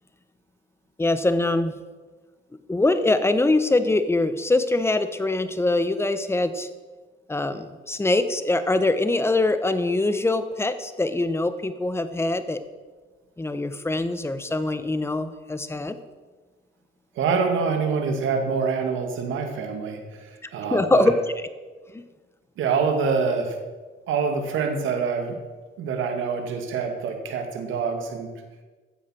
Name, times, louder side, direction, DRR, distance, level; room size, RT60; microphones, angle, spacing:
voice 1, 1.0-1.7 2.7-6.7 7.3-12.6 13.4-16.0 20.7-21.1 21.9-22.0, left 2 dB, 10° left, 11 dB, 1.0 m, -23 dB
voice 2, 17.2-21.1 22.6-23.6 24.1-25.4 25.8-28.3, right 5 dB, 80° right, 4 dB, 2.2 m, -26 dB
14.0 x 7.8 x 6.4 m, 1.3 s
cardioid pair, 90°, 20 cm